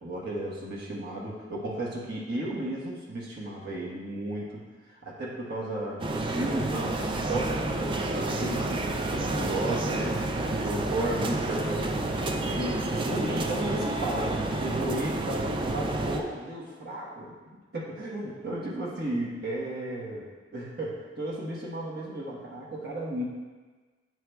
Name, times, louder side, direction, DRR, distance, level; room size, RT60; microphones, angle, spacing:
voice 1, 0.0-10.2 10.6-17.3 17.7-23.2, right 1 dB, 60° right, -5 dB, 1.1 m, -34 dB
sound 1, 6.0-16.2, right 2 dB, 25° right, 0.4 m, -30 dB
9.2 x 4.7 x 2.3 m, 1.4 s
head